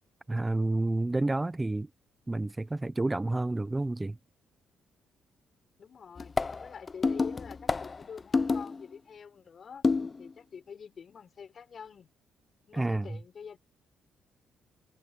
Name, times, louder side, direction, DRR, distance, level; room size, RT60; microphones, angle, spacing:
voice 1, 0.3-1.9 2.3-4.2 12.7-13.1, right 2 dB, 15° right, 0.7 m, -29 dB
voice 2, 5.8-6.3 6.6-9.9 10.2-12.1 12.7-13.6, left 6 dB, 50° left, 6.6 m, -46 dB
sound 1, 6.2-8.8 9.8-10.3, left 4 dB, 30° left, 0.8 m, -29 dB
cardioid pair, 90°, 0 cm